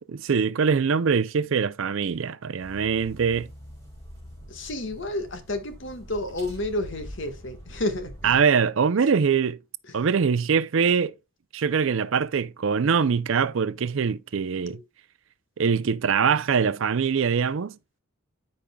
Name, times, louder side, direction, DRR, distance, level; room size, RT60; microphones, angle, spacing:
voice 1, 0.0-3.5 8.2-9.6 9.9-11.1 11.5-14.8 15.6-17.8, right 6 dB, 65° right, 0.4 m, -23 dB
sound 1, 2.6-8.4, equal, 15° left, 3.5 m, -44 dB
voice 2, 4.5-8.4 9.9-10.0 14.6-14.8, left 1 dB, 55° left, 1.5 m, -31 dB
13.0 x 5.2 x 2.3 m
head